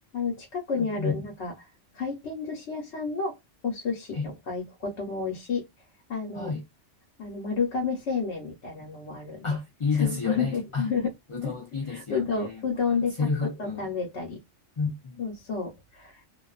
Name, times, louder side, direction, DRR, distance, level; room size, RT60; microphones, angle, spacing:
voice 1, 0.1-1.5 1.9-3.4 3.6-4.2 4.5-5.6 6.1-6.5 7.2-9.5 9.9-11.1 11.4-11.5 11.9-14.4 15.2-16.3, left 5 dB, 70° left, 1.1 m, -30 dB
voice 2, 0.7-1.2 4.1-4.3 6.3-6.6 9.4-10.9 11.3-12.6 13.2-13.9 14.8-15.2, left 4 dB, 45° left, 0.4 m, -30 dB
2.5 x 2.3 x 2.3 m
omnidirectional pair, 1.2 m